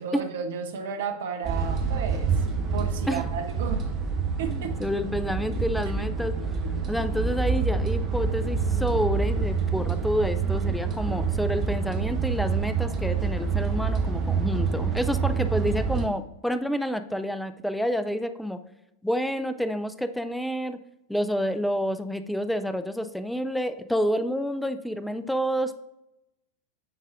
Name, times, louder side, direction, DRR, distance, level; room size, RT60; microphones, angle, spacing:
voice 1, 0.0-3.9 4.4-4.8 6.0-6.1, right 5 dB, 55° right, 6 dB, 0.8 m, -33 dB
sound 1, 1.4-16.1, right 5 dB, 30° right, 0.9 m, -27 dB
voice 2, 4.8-6.4 6.9-18.6 19.0-20.8 21.1-25.8, equal, ahead, 9 dB, 0.4 m, -28 dB
9.7 x 4.0 x 2.5 m, 0.89 s
figure-of-eight pair, 90°, 0 cm